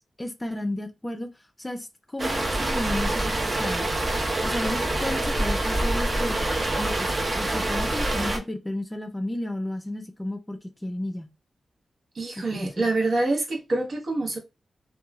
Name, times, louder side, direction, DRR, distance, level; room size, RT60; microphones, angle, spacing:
voice 1, 0.2-1.3 1.6-3.9 4.4-6.4 6.8-11.3 12.4-12.7, left 1 dB, 15° left, 0.3 m, -33 dB
sound 1, 2.2-8.4, right 1 dB, 40° right, 0.6 m, -26 dB
voice 2, 12.1-14.4, right 2 dB, 65° right, 0.8 m, -26 dB
2.9 x 2.3 x 2.2 m
wide cardioid pair, 125°, 0 cm